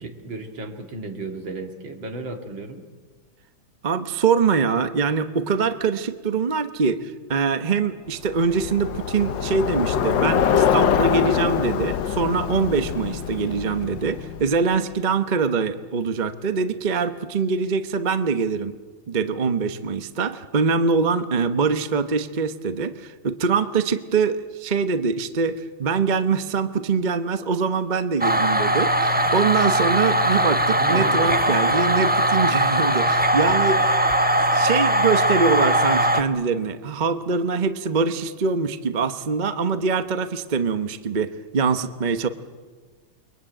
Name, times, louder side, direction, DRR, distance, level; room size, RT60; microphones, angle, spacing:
voice 1, 0.0-2.8 30.8-31.8, right 3 dB, 70° right, 5 dB, 3.0 m, -33 dB
voice 2, 3.8-18.7 19.1-34.0 34.5-42.3, right 5 dB, 35° right, 10 dB, 0.7 m, -23 dB
Bicycle, 8.2-14.7, left 8 dB, 65° left, 1.6 m, -24 dB
sound 1, 28.2-36.2, right 1 dB, 15° right, 0.3 m, -20 dB
29.0 x 23.0 x 9.0 m, 1.5 s
omnidirectional pair, 2.2 m